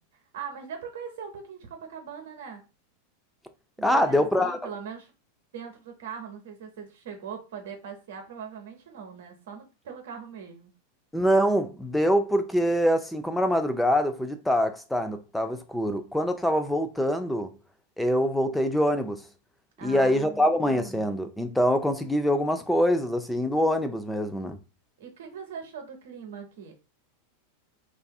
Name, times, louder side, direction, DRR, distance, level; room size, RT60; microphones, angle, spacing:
voice 1, 0.0-2.6 3.8-5.1 5.5-10.7 19.8-20.6 25.0-26.7, right 7 dB, 70° right, 0.7 m, -41 dB
voice 2, 3.8-4.6 11.1-17.5 18.0-19.2 19.8-24.6, equal, 5° left, 0.3 m, -24 dB
2.5 x 2.4 x 2.3 m
hypercardioid pair, 95°, 0 cm